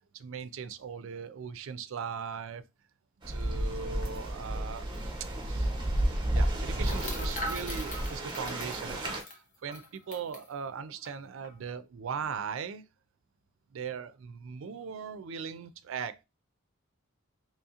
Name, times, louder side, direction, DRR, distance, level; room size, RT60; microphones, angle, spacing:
voice 1, 0.1-2.6 3.3-5.1 5.5-5.7 6.3-12.8 13.7-16.2, right 6 dB, 65° right, 0.4 m, -39 dB
sound 1, 3.2-9.2, right 1 dB, 20° right, 0.8 m, -32 dB
sound 2, 4.9-5.0 5.2-5.4 6.8-10.5 11.0-11.1 11.4-11.7, left 1 dB, 35° left, 1.0 m, -41 dB
3.6 x 3.0 x 2.8 m
head